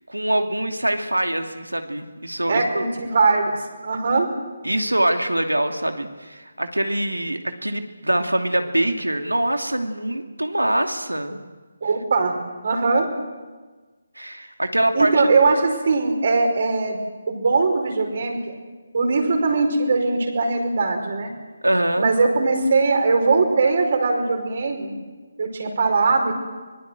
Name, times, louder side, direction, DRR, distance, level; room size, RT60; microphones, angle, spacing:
voice 1, 0.1-2.8 4.6-11.4 14.2-15.1 21.6-22.1, right 1 dB, 90° right, 5 dB, 2.7 m, -24 dB
voice 2, 2.5-3.6 3.8-4.3 11.8-12.3 12.6-13.1 14.9-18.6 18.9-21.3 22.0-25.0 25.4-26.4, right 3 dB, 50° right, 3 dB, 5.0 m, -20 dB
25.0 x 21.0 x 7.8 m, 1.3 s
figure-of-eight pair, 150°, 0 cm